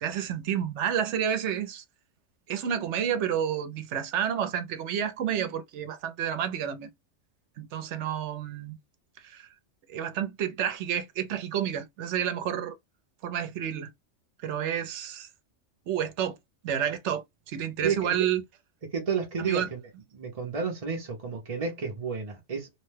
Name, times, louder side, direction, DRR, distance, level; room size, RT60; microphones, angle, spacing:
voice 1, 0.0-1.8 2.5-6.9 7.6-8.8 9.2-9.5 9.9-12.7 13.2-13.9 14.4-15.3 15.9-16.4 16.6-18.4 19.4-19.7, right 9 dB, 70° right, 0.9 m, -30 dB
voice 2, 17.8-18.3 18.8-19.8 20.1-22.7, right 6 dB, 40° right, 0.6 m, -31 dB
2.8 x 2.1 x 3.2 m
omnidirectional pair, 1.3 m